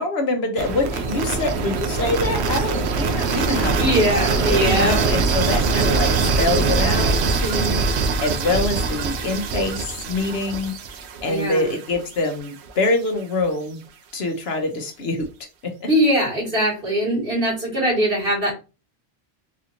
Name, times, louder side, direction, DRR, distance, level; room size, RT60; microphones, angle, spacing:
voice 1, 0.0-3.7 4.1-6.1 6.4-10.7 11.2-13.8 14.1-15.3 15.6-15.7, left 2 dB, 75° left, 5 dB, 1.1 m, -25 dB
sound 1, 0.6-12.5, right 4 dB, 80° right, 0.9 m, -23 dB
voice 2, 3.8-5.1 11.2-11.7 15.9-18.5, equal, 60° right, -2 dB, 2.2 m, -21 dB
4.2 x 2.6 x 2.9 m, 0.30 s
omnidirectional pair, 1.1 m